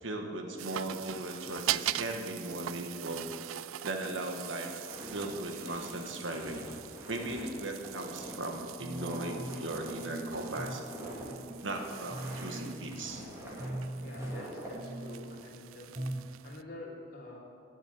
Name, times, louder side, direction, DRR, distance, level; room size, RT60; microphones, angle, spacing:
voice 1, 0.0-3.5 3.8-4.7 5.1-6.7 7.1-10.8 11.6-13.2, right 1 dB, 65° right, 4 dB, 1.3 m, -38 dB
sound 1, 0.6-16.6, right 14 dB, 80° right, 0.3 m, -42 dB
Walk footsteps, 4.8-14.7, right 1 dB, 15° right, 2.3 m, -45 dB
sound 2, 8.8-9.6 10.0-10.8 11.2-11.7 12.1-13.3 13.6-14.5 14.7-15.5 15.9-16.3 16.5-16.6, right 1 dB, 30° right, 1.1 m, -41 dB
voice 2, 14.0-15.9 16.4-17.4, left 1 dB, 50° left, -5 dB, 2.9 m, -47 dB
10.5 x 7.2 x 8.6 m, 2.4 s
head